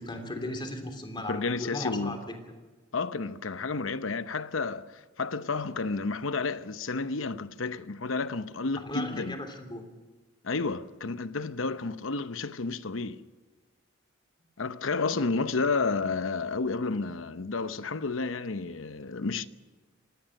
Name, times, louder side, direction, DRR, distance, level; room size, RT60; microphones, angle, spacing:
voice 1, 0.0-2.4 8.7-9.9, left 1 dB, 25° left, 3.2 m, -37 dB
voice 2, 1.3-2.2 2.9-9.4 10.4-13.2 14.6-19.5, left 4 dB, 75° left, 0.9 m, -31 dB
25.0 x 18.5 x 6.6 m
head